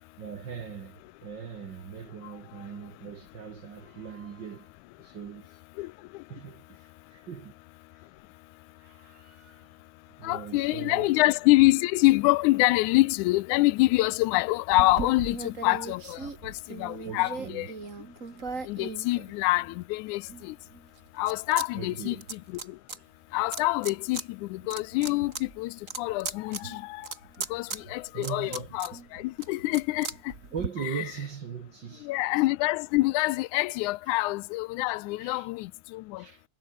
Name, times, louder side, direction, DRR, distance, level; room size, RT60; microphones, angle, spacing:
voice 1, 0.2-4.7 5.0-5.6 6.3-7.5 7.9-8.1 8.8-9.7 10.2-11.2 17.0-17.7 21.7-22.3 28.1-28.7 30.5-32.1 34.0-34.1 35.2-35.5 36.2-36.4, right 7 dB, 50° right, 1.5 m, -40 dB
voice 2, 10.2-17.7 18.7-20.6 21.2-22.4 23.3-24.2 24.5-27.1 27.5-30.1 31.0-31.1 32.0-36.2, left 20 dB, 85° left, 2.0 m, -26 dB
sound 1, 14.7-19.8 20.3-21.7 21.9-23.0 23.5-24.3 24.6-30.7, right 4 dB, 25° right, 2.7 m, -38 dB
omnidirectional pair, 3.5 m